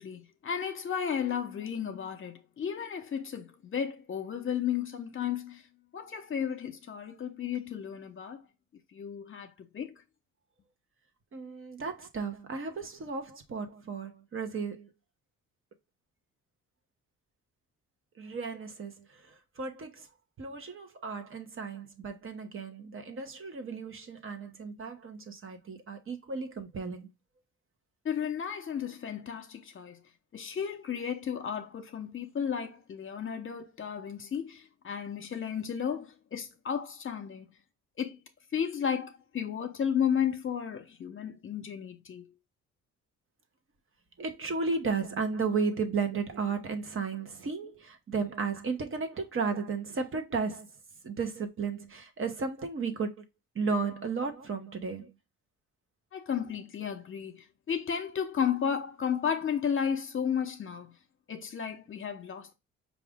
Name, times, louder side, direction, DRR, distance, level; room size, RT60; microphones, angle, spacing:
voice 1, 0.0-5.6 5.9-8.4 8.9-10.0 28.0-30.0 30.3-37.5 38.0-38.2 38.5-42.3 56.1-60.9 61.3-62.5, left 8 dB, 45° left, 0.9 m, -33 dB
voice 2, 11.3-14.9 18.2-20.1 20.4-27.1 44.2-50.7 51.0-53.2 53.5-55.1, right 4 dB, 45° right, 0.9 m, -34 dB
4.8 x 2.6 x 3.5 m
cardioid pair, 90°, 30 cm